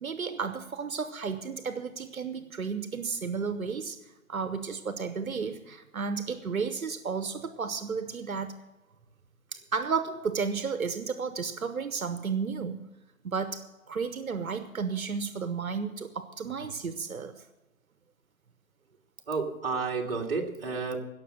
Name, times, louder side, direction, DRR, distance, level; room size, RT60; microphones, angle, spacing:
voice 1, 0.0-4.0 4.3-8.6 9.5-12.8 13.2-17.4, right 5 dB, 85° right, 10 dB, 1.1 m, -33 dB
voice 2, 19.3-21.0, right 4 dB, 45° right, 0 dB, 2.1 m, -31 dB
17.0 x 6.9 x 6.4 m, 1.1 s
hypercardioid pair, 155°, 41 cm